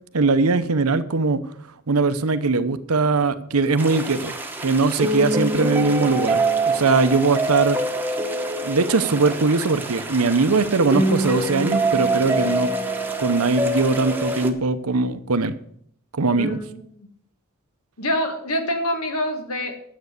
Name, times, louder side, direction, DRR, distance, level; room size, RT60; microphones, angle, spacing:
voice 1, 0.1-1.4 1.9-4.3 4.6-7.8 8.6-12.7 13.2-15.5 16.2-16.6, right 3 dB, 80° right, 12 dB, 0.8 m, -20 dB
sound 1, 3.8-14.5, right 2 dB, 10° right, 1.1 m, -25 dB
voice 2, 5.5-5.9 16.4-17.1 18.0-19.8, left 1 dB, 80° left, 5 dB, 1.8 m, -26 dB
9.6 x 7.9 x 6.5 m, 0.65 s
head